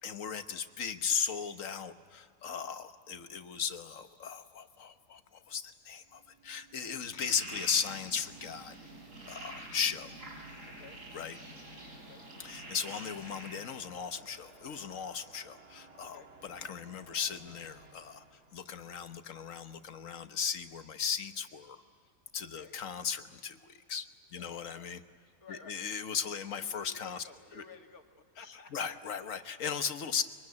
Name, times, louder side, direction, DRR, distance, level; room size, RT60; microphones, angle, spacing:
voice 1, 0.0-8.7 9.2-10.1 11.1-11.4 12.4-18.2 18.5-21.8 22.3-24.1 24.3-25.0 25.5-27.2 27.5-27.6 28.7-30.2, left 7 dB, 65° left, 9 dB, 1.5 m, -37 dB
sound 1, 6.0-19.1, right 3 dB, 80° right, 2.9 m, -57 dB
sound 2, 7.2-13.6, right 1 dB, 65° right, 6.0 m, -47 dB
voice 2, 10.7-11.0 12.1-12.2 16.1-16.3 22.5-22.8 24.3-24.9 25.4-25.8 26.6-28.1 28.4-28.9 29.3-29.7, left 4 dB, 90° left, 3 dB, 2.4 m, -54 dB
24.5 x 23.5 x 9.6 m, 2.2 s
omnidirectional pair, 1.5 m